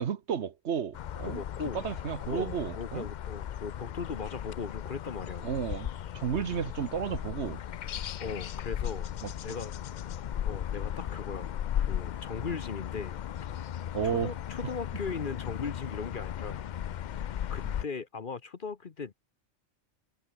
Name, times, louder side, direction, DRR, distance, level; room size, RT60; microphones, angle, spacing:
voice 1, 0.0-1.4 1.7-3.0 5.4-7.6 13.9-14.3 14.6-14.7, right 7 dB, 65° right, 1.2 m, -32 dB
sound 1, 0.9-17.8, left 10 dB, 65° left, 0.4 m, -36 dB
voice 2, 1.2-1.9 2.2-5.5 8.2-9.1 9.4-9.7 10.4-13.2 14.2-16.7 17.5-19.1, left 5 dB, 45° left, 1.1 m, -38 dB
omnidirectional pair, 1.3 m